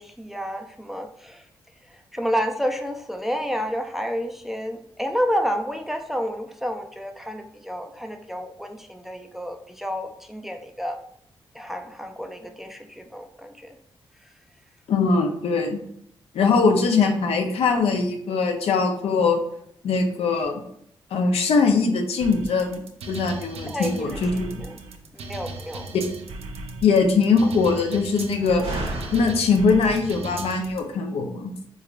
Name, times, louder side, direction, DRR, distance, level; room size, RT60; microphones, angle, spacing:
voice 1, 0.0-1.4 2.1-11.0 11.5-13.8 17.0-17.1 23.7-24.8 25.1-25.9, equal, 5° right, 5 dB, 0.4 m, -30 dB
voice 2, 14.9-15.8 16.3-19.4 19.8-20.6 21.1-24.5 25.9-26.1 26.8-28.7 29.1-31.5, left 4 dB, 80° left, 4 dB, 0.5 m, -21 dB
sound 1, 22.2-30.8, right 3 dB, 90° right, 0.4 m, -37 dB
Slam, 23.5-30.8, right 1 dB, 65° right, 1.0 m, -40 dB
3.5 x 3.1 x 2.4 m, 0.70 s
cardioid pair, 65°, 10 cm